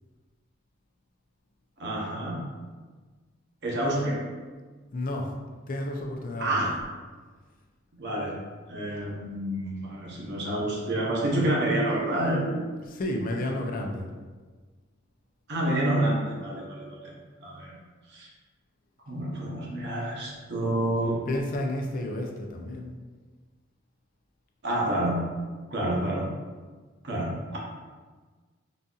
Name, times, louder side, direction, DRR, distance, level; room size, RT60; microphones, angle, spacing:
voice 1, 1.8-2.4 3.6-4.2 6.4-6.7 8.0-8.4 8.7-12.8 15.5-17.1 17.4-17.8 18.1-18.3 19.1-21.2 24.6-25.2 25.7-26.3 27.0-27.6, right 1 dB, 60° right, -3 dB, 0.8 m, -28 dB
voice 2, 4.9-5.3 5.7-6.7 12.8-14.1 21.3-22.9, left 1 dB, 45° left, 2 dB, 0.4 m, -31 dB
3.9 x 2.6 x 2.3 m, 1.4 s
head